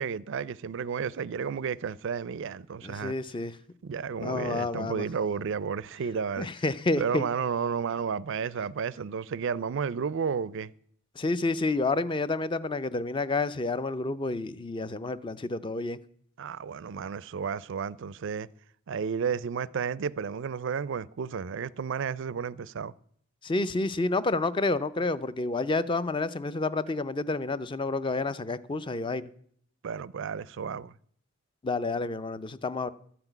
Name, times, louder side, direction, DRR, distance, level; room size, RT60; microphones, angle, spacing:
voice 1, 0.0-3.1 3.8-6.5 7.0-10.7 16.4-18.5 18.9-22.9 29.8-30.9, right 6 dB, 55° right, 0.4 m, -32 dB
voice 2, 2.8-3.5 4.2-5.1 6.4-7.2 11.2-16.0 23.4-29.3 31.6-32.9, left 3 dB, 20° left, 0.4 m, -29 dB
12.5 x 5.9 x 9.0 m
head